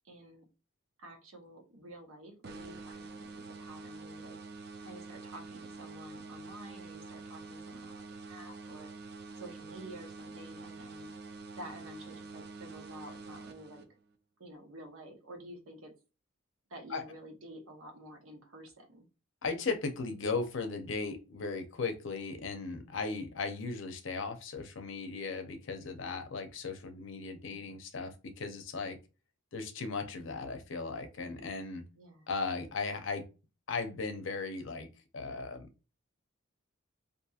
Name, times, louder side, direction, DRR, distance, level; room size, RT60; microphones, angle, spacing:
voice 1, 0.0-0.5 1.0-4.4 4.8-8.9 9.4-11.1 11.6-13.8 14.4-15.9 16.7-19.1 27.4-27.7 31.9-32.3, right 1 dB, 75° right, 3 dB, 0.8 m, -50 dB
sound 1, 2.4-14.2, right 3 dB, 50° right, 0.4 m, -47 dB
voice 2, 19.4-29.0 29.5-31.8 32.3-33.3 33.7-34.9 35.1-35.7, left 4 dB, 60° left, 7 dB, 0.6 m, -37 dB
2.8 x 2.6 x 2.3 m, 0.31 s
head